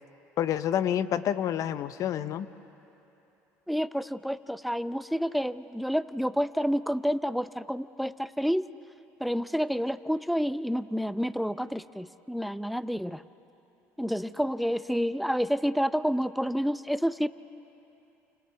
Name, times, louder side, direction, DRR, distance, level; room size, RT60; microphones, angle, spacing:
voice 1, 0.4-2.5, left 10 dB, 55° left, 13 dB, 0.8 m, -28 dB
voice 2, 3.7-8.7 9.2-13.2 14.0-17.3, equal, ahead, 14 dB, 0.6 m, -29 dB
29.0 x 29.0 x 3.5 m, 2.9 s
supercardioid pair, 80°, 7 cm